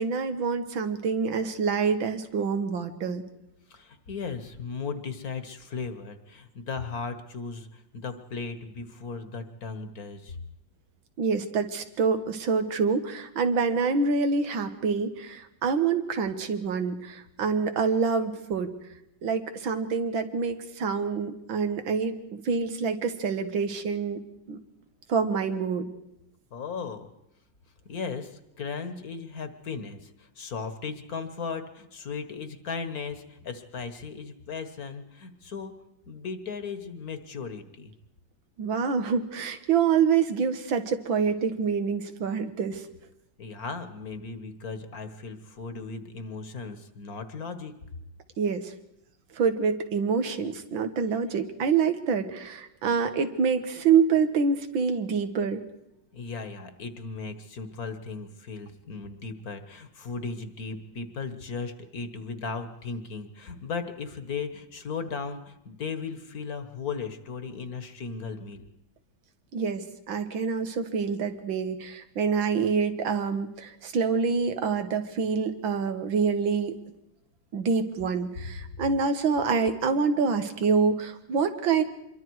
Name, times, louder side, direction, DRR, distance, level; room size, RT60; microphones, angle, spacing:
voice 1, 0.0-3.2 11.2-18.7 19.2-24.2 24.5-24.6 25.1-25.9 38.6-42.8 48.4-48.6 49.4-55.6 69.5-76.8 77.5-81.8, right 5 dB, 90° right, 8 dB, 2.1 m, -26 dB
voice 2, 3.7-10.4 26.5-27.1 27.9-35.8 36.1-37.9 43.4-47.8 56.1-68.7, left 5 dB, 55° left, 10 dB, 1.7 m, -36 dB
26.0 x 23.0 x 4.7 m, 0.84 s
omnidirectional pair, 2.1 m